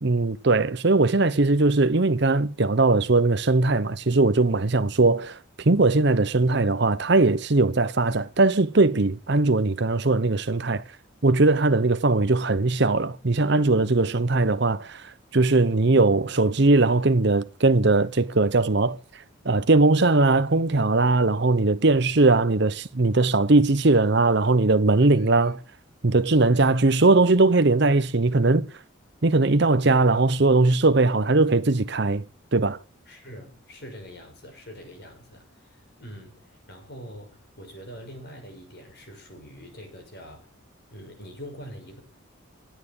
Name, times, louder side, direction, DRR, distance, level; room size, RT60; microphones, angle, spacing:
voice 1, 0.0-5.4 5.7-10.8 11.2-19.0 19.4-25.5 26.0-28.7 29.2-32.2 32.5-32.8, right 3 dB, 55° right, 0.8 m, -20 dB
voice 2, 25.0-25.5 33.1-40.5 40.9-42.0, equal, 50° left, 6.4 m, -44 dB
16.5 x 9.3 x 8.9 m
head